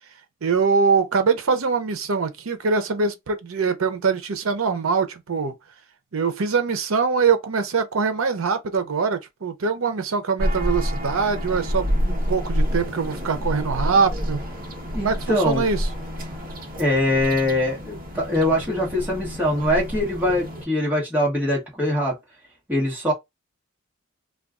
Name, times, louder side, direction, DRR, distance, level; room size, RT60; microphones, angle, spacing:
voice 1, 0.4-5.5 6.1-14.4 15.0-15.9, right 5 dB, 80° right, 0.6 m, -23 dB
sound 1, 10.4-20.6, equal, 40° right, 0.8 m, -28 dB
voice 2, 14.9-15.6 16.8-22.1 22.7-23.1, left 1 dB, 10° right, 1.2 m, -23 dB
2.4 x 2.3 x 3.6 m
head